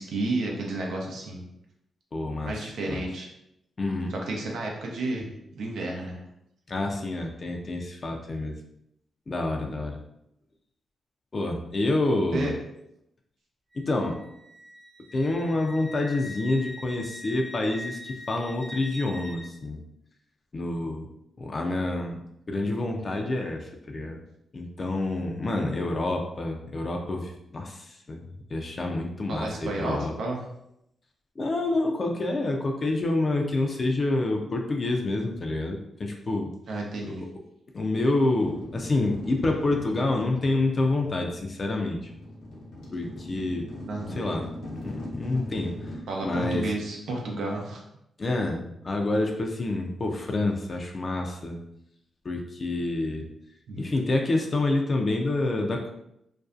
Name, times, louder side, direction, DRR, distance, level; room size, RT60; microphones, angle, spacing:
voice 1, 0.0-1.4 2.4-3.3 4.1-6.2 12.3-12.5 23.1-23.2 29.3-30.4 36.7-37.2 43.9-44.2 46.1-47.8 53.7-53.9, right 2 dB, 75° right, -1 dB, 0.6 m, -31 dB
voice 2, 2.1-2.6 2.9-3.0 3.8-4.1 6.7-8.5 9.3-10.0 11.3-12.5 13.7-14.3 15.1-19.8 20.5-21.1 21.4-24.2 24.5-28.2 28.5-30.1 31.4-36.5 37.1-37.2 37.7-42.1 42.9-43.7 44.1-44.5 44.8-46.8 48.2-51.6 52.2-53.3 53.8-55.9, left 2 dB, 45° left, 2 dB, 0.4 m, -28 dB
Wind instrument woodwind instrument, 13.7-19.5, left 1 dB, 35° right, 0.7 m, -43 dB
sound 1, 38.3-46.0, left 1 dB, 85° left, 0.7 m, -40 dB
2.5 x 2.2 x 2.4 m, 0.79 s
supercardioid pair, 55°, 0 cm